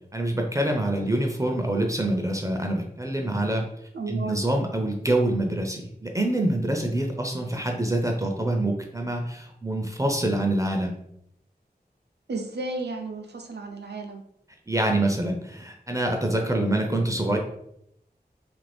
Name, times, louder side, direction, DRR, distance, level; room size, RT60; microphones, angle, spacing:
voice 1, 0.1-3.7 4.1-10.9 14.7-17.4, right 1 dB, 20° right, 2 dB, 0.4 m, -26 dB
voice 2, 3.9-4.4 12.3-14.2, right 3 dB, 80° right, 4 dB, 0.5 m, -33 dB
2.8 x 2.5 x 3.3 m, 0.74 s
wide cardioid pair, 70°, 17 cm